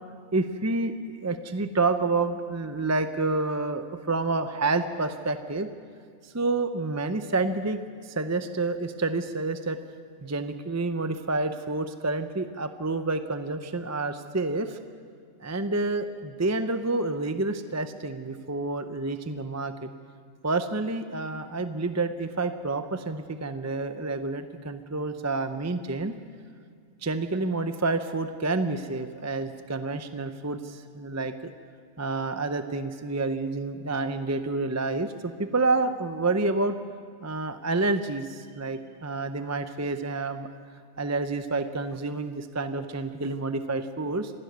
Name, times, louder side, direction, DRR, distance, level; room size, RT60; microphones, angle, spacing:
voice 1, 0.3-5.7 6.2-9.8 10.2-14.8 15.4-19.9 20.4-26.1 27.0-31.5 32.0-36.8 37.2-40.5 41.0-44.3, right 3 dB, 20° right, 9 dB, 0.5 m, -29 dB
26.5 x 12.0 x 9.3 m, 2.1 s
omnidirectional pair, 1.4 m